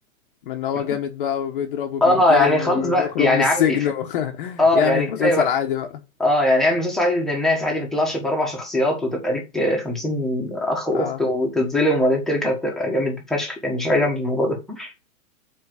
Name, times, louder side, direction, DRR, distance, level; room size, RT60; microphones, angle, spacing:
voice 1, 0.4-6.0 10.9-11.2, left 10 dB, 35° left, 1.2 m, -25 dB
voice 2, 2.0-3.8 4.6-5.5 6.2-14.9, left 1 dB, ahead, 1.4 m, -21 dB
7.3 x 4.5 x 6.2 m
supercardioid pair, 175°, 42 cm